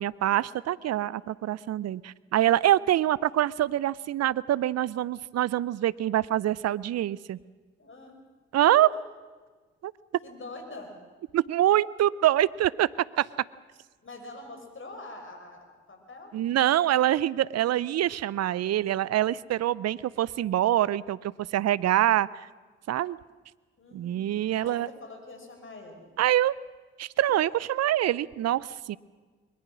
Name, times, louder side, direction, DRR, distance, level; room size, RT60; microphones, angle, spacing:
voice 1, 0.0-7.4 8.5-8.9 9.8-9.9 11.3-12.9 13.2-13.3 16.3-22.5 22.9-23.2 23.9-24.9 26.2-26.5 27.0-29.0, right 13 dB, 55° right, 21 dB, 0.6 m, -25 dB
voice 2, 7.8-8.2 8.6-9.0 10.2-11.0 14.0-16.3 23.8-24.3 24.6-26.1, left 2 dB, 40° left, 4 dB, 5.8 m, -44 dB
22.0 x 21.0 x 6.2 m, 1.4 s
hypercardioid pair, 45°, 31 cm